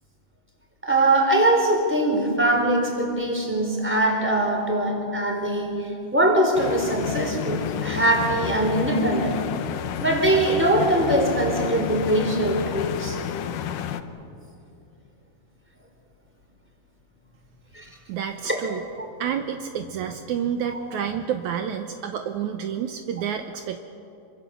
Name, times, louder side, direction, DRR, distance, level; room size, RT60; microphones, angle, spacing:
voice 1, 0.8-5.8 6.1-9.4 10.0-13.2 17.7-17.9 18.4-18.6 20.7-20.9, right 1 dB, 5° right, 1 dB, 3.9 m, -22 dB
sound 1, 6.5-14.0, left 9 dB, 75° left, 2.4 m, -30 dB
voice 2, 18.1-18.9 19.2-23.8, right 8 dB, 75° right, 6 dB, 2.1 m, -29 dB
27.0 x 25.0 x 7.1 m, 2.7 s
omnidirectional pair, 3.7 m